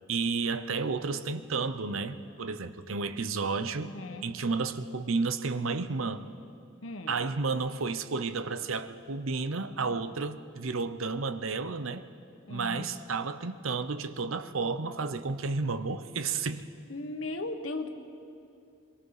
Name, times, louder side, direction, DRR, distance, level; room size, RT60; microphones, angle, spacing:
voice 1, 0.0-3.9 4.2-6.3 7.1-12.1 12.5-16.7, right 4 dB, 85° right, 12 dB, 0.8 m, -32 dB
voice 2, 3.9-4.2 6.8-7.1 12.5-12.9 16.9-17.9, left 2 dB, 75° left, 6 dB, 1.4 m, -37 dB
25.0 x 23.0 x 4.9 m, 2.6 s
head